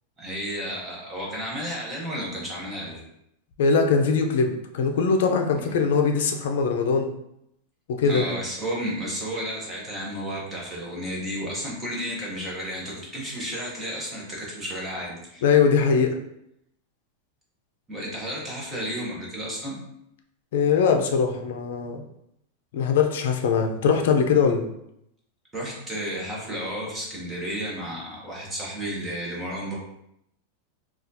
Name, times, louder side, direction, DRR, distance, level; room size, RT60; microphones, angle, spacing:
voice 1, 0.2-3.0 8.0-15.4 17.9-19.8 25.5-29.7, equal, 10° right, -4 dB, 0.8 m, -32 dB
voice 2, 3.6-7.1 7.9-8.4 15.4-16.2 20.5-22.0 22.7-24.6, left 5 dB, 65° left, 4 dB, 0.5 m, -21 dB
4.1 x 2.4 x 2.6 m, 0.78 s
supercardioid pair, 175°, 0 cm